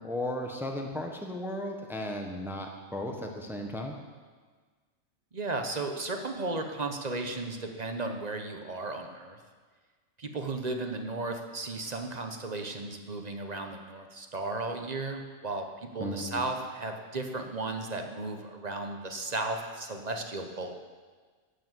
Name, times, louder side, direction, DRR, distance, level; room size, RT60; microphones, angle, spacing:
voice 1, 0.0-4.0 16.0-16.4, left 1 dB, ahead, 2 dB, 1.0 m, -35 dB
voice 2, 5.3-9.4 10.2-20.7, right 2 dB, 35° right, 4 dB, 1.0 m, -35 dB
11.5 x 7.1 x 7.9 m, 1.5 s
omnidirectional pair, 1.4 m